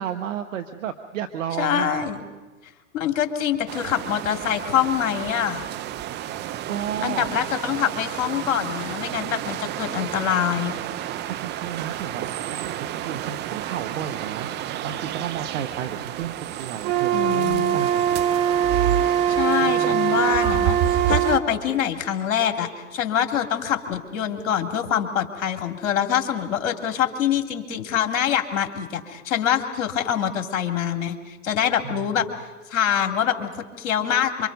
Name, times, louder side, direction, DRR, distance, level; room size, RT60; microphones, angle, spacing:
voice 1, 0.0-2.1 6.7-7.3 11.0-14.5 14.8-18.2 19.6-20.2 31.8-32.2, right 9 dB, 70° right, 8 dB, 1.3 m, -32 dB
voice 2, 1.6-2.2 2.9-5.6 7.0-10.7 17.1-17.8 19.0-32.3 32.7-34.5, left 9 dB, 65° left, 6 dB, 2.7 m, -25 dB
sound 1, 3.7-21.4, right 11 dB, 25° right, 0.7 m, -31 dB
Wind instrument woodwind instrument, 16.8-21.5, right 10 dB, 50° right, 2.6 m, -22 dB
26.5 x 25.0 x 5.4 m, 1.3 s
hypercardioid pair, 115°, 40 cm